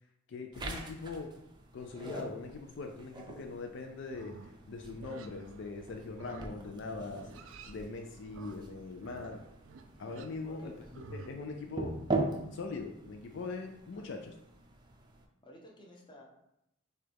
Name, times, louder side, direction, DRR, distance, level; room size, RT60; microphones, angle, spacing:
voice 1, 0.3-1.3 1.7-4.3 4.7-7.3 7.7-9.4 10.0-11.9 12.5-14.3, left 3 dB, 60° left, 4 dB, 0.4 m, -41 dB
sound 1, 0.5-15.3, right 2 dB, 20° right, 0.5 m, -42 dB
Livestock farm animals working animals, 4.0-11.3, right 4 dB, 75° right, 0.4 m, -52 dB
voice 2, 10.4-11.0 13.9-14.2 15.4-16.2, equal, 25° left, -1 dB, 0.8 m, -54 dB
6.5 x 2.3 x 3.4 m, 0.82 s
head